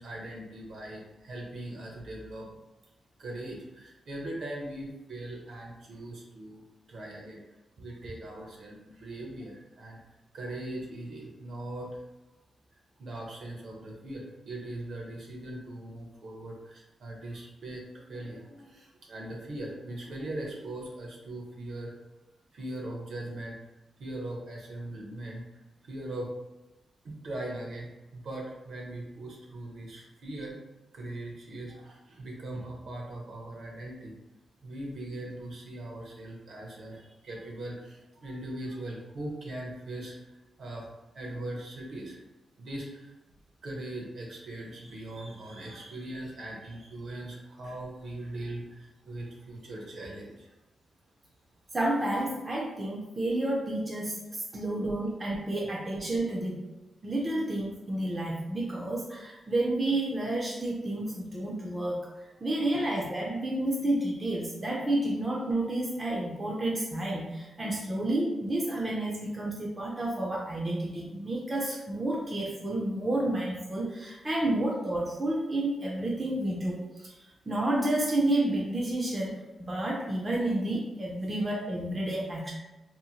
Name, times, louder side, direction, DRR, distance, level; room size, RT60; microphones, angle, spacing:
voice 1, 0.0-2.5 3.2-6.6 6.9-7.4 7.8-10.0 10.3-12.0 13.0-21.9 22.5-23.6 24.0-25.4 25.8-26.3 27.0-30.6 30.9-34.1 34.6-42.2 42.6-43.1 43.6-50.5, right 1 dB, 65° right, -1 dB, 0.7 m, -40 dB
voice 2, 51.7-56.7 57.0-77.2 77.5-82.5, right 1 dB, 25° right, -3 dB, 0.4 m, -30 dB
2.7 x 2.0 x 2.8 m, 1.0 s
wide cardioid pair, 130°, 0 cm